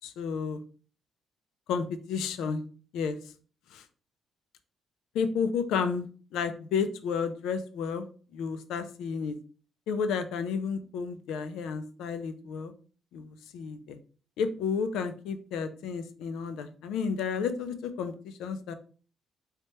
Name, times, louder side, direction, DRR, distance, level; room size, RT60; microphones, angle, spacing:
voice 1, 0.0-0.6 1.7-2.6 2.9-3.2 3.7-3.8 5.1-6.1 6.3-8.1 8.3-9.4 9.9-12.7 13.1-14.0 14.4-18.7, left 6 dB, 90° left, 10 dB, 0.4 m, -31 dB
3.2 x 3.1 x 2.8 m, 0.41 s
cardioid pair, 90°, 0 cm